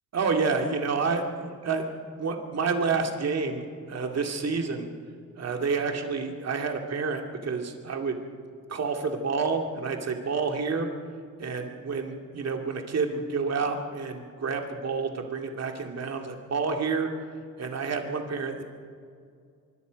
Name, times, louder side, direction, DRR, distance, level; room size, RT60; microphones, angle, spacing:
voice 1, 0.1-4.9 5.4-8.2 8.7-10.9 11.4-17.1 17.6-18.6, right 4 dB, 50° right, 3 dB, 2.4 m, -29 dB
26.0 x 23.5 x 5.2 m, 2.3 s
wide cardioid pair, 155°, 33 cm